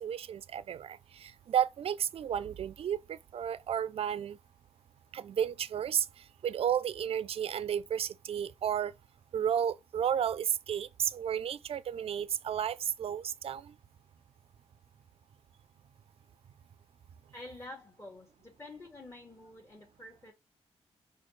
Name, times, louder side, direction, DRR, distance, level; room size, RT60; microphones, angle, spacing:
voice 1, 0.0-4.4 5.1-6.1 6.4-8.9 9.3-13.7, right 9 dB, 60° right, 0.4 m, -32 dB
voice 2, 17.3-20.3, left 2 dB, 25° left, 1.2 m, -48 dB
4.2 x 2.3 x 3.1 m
cardioid pair, 70°, 11 cm